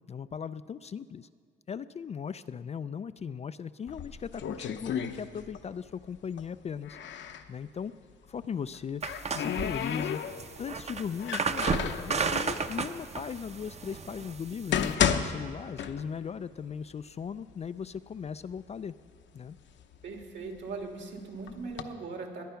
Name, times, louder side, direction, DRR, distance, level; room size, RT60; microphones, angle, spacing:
voice 1, 0.1-1.3 1.7-7.9 8.3-10.2 10.6-18.9 19.3-19.6, left 7 dB, 35° left, 14 dB, 0.4 m, -38 dB
sound 1, 3.9-5.8 6.0-7.5 8.6-10.6 11.2-12.1 12.9-13.0 13.7-13.8 14.4-16.4 16.7-16.8 17.5-17.6 18.0-18.6 19.2-20.8 21.5-21.8, left 8 dB, 65° left, 0.9 m, -32 dB
sound 2, 9.0-15.0, right 5 dB, 35° right, 0.8 m, -33 dB
voice 2, 20.0-22.4, right 4 dB, 65° right, 2 dB, 2.5 m, -39 dB
21.0 x 9.1 x 5.7 m, 2.1 s
cardioid pair, 90°, 20 cm